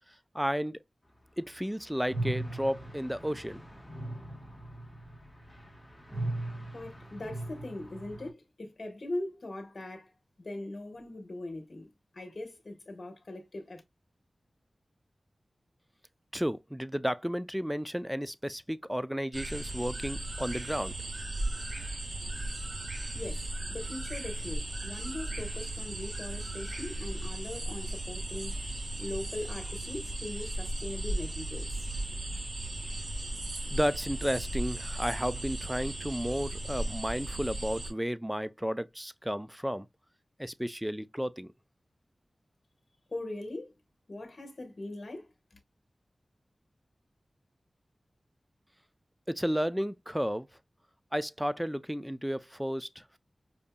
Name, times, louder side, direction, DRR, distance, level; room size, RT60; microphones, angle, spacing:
voice 1, 0.3-0.8 1.4-3.6 16.3-20.9 33.7-39.9 40.4-41.5 49.3-50.5 51.1-53.2, equal, 5° right, 0.4 m, -33 dB
sound 1, 2.0-8.3, right 1 dB, 15° left, 1.3 m, -39 dB
voice 2, 6.7-10.1 10.4-13.8 23.1-28.6 29.0-31.9 43.1-43.7 44.1-45.6, left 1 dB, 60° left, 1.1 m, -40 dB
sound 2, 19.3-37.9, right 1 dB, 65° right, 2.0 m, -36 dB
5.0 x 2.6 x 2.2 m
wide cardioid pair, 55°, 0 cm